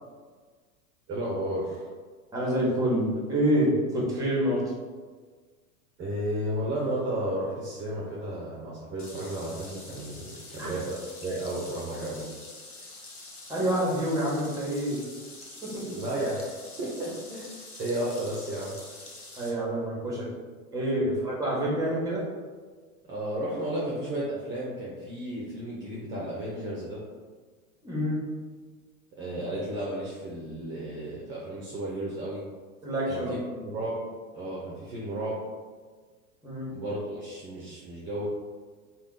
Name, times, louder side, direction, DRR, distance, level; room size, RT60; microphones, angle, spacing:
voice 1, 1.1-1.8 6.0-12.3 15.8-16.5 16.8-17.5 17.8-18.8 23.1-27.0 29.1-32.5 33.1-33.2 33.6-34.0 34.3-35.4 36.7-38.3, right 1 dB, 25° right, -6 dB, 0.9 m, -33 dB
voice 2, 2.3-4.6 10.6-10.7 13.5-15.0 15.6-16.0 19.4-20.3 20.7-22.2 27.8-28.2 32.8-33.3 36.4-36.7, equal, 10° right, -5 dB, 1.4 m, -27 dB
sound 1, 9.0-19.5, left 2 dB, 85° left, 0.9 m, -46 dB
3.5 x 2.5 x 3.9 m, 1.5 s
figure-of-eight pair, 90°, 43 cm